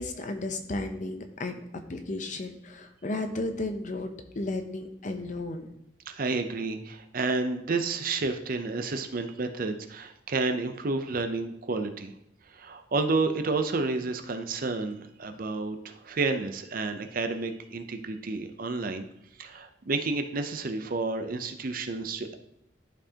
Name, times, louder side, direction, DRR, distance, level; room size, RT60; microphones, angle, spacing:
voice 1, 0.0-1.6 1.9-5.7, left 2 dB, 40° left, 6 dB, 0.7 m, -34 dB
voice 2, 6.1-12.1 12.5-19.1 19.4-22.4, right 3 dB, 45° right, 7 dB, 0.6 m, -30 dB
11.5 x 4.5 x 2.9 m, 0.79 s
head